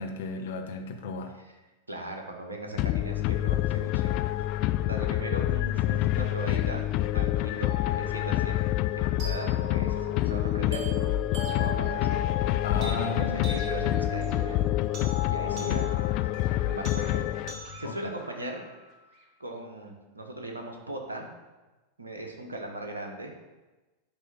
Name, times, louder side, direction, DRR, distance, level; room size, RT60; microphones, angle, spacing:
voice 1, 0.0-1.4 12.6-13.4 15.5-15.8 17.8-18.1, left 4 dB, 60° left, 4 dB, 1.0 m, -34 dB
voice 2, 1.9-4.1 4.8-6.9 7.1-8.6 8.9-10.9 11.5-12.2 12.7-14.7 15.3-15.9 16.2-16.3 16.6-17.4 17.8-18.6 19.4-21.3 22.0-23.3, right 1 dB, 75° right, 2 dB, 1.3 m, -38 dB
sound 1, 2.8-17.8, left 14 dB, 40° left, 0.3 m, -27 dB
sound 2, 9.2-19.2, right 3 dB, 35° right, 2.0 m, -42 dB
10.5 x 3.5 x 6.8 m, 1.2 s
figure-of-eight pair, 90°, 0 cm